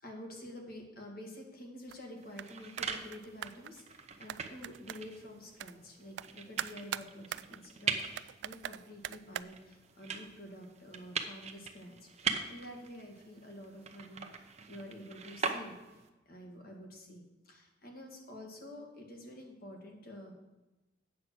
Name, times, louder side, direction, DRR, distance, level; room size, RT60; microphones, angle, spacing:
voice 1, 0.0-16.0 16.3-20.3, equal, 50° left, 1 dB, 2.0 m, -49 dB
sound 1, 1.9-2.5 2.8-3.8 4.3-5.2 5.6-5.7 6.2-6.3 6.6-9.4, right 10 dB, 65° right, 0.3 m, -41 dB
sound 2, 2.2-16.1, right 5 dB, 35° right, 0.8 m, -42 dB
8.6 x 7.5 x 6.1 m, 1.1 s
head